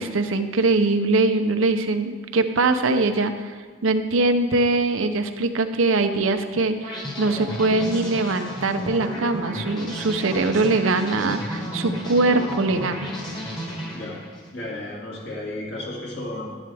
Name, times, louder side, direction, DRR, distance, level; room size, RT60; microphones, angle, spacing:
voice 1, 0.0-3.5 3.8-13.1, right 3 dB, 80° right, 8 dB, 0.7 m, -22 dB
sound 1, 6.8-14.5, equal, 20° left, 1.6 m, -32 dB
voice 2, 14.5-16.6, left 1 dB, 55° left, -4 dB, 2.3 m, -33 dB
11.0 x 10.5 x 3.5 m, 1.5 s
head